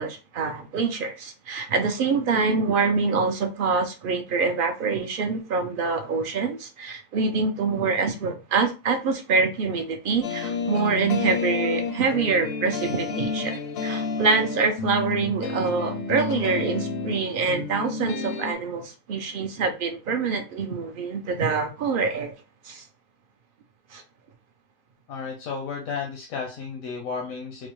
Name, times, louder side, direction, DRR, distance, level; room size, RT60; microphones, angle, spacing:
voice 1, 0.0-22.3 22.6-22.9 23.9-24.0, right 4 dB, 65° right, 0.5 m, -25 dB
sound 1, 10.2-18.5, left 5 dB, 65° left, 0.6 m, -30 dB
voice 2, 25.1-27.7, left 5 dB, 85° left, 1.1 m, -33 dB
4.0 x 2.1 x 3.0 m
omnidirectional pair, 1.4 m